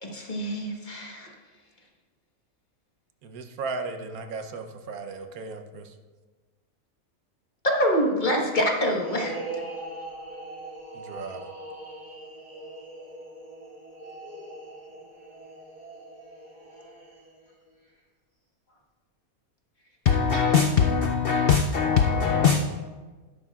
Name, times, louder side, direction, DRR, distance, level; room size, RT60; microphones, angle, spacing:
voice 1, 0.0-1.3 7.6-9.4, equal, 35° left, 0 dB, 1.3 m, -25 dB
voice 2, 3.2-5.9 10.9-11.4, right 4 dB, 80° right, 6 dB, 1.3 m, -36 dB
sound 1, 8.9-17.5, right 2 dB, 25° right, 1.9 m, -41 dB
voice 3, 20.1-22.7, left 6 dB, 65° left, 5 dB, 0.5 m, -21 dB
12.5 x 10.5 x 2.4 m, 1.3 s
omnidirectional pair, 1.5 m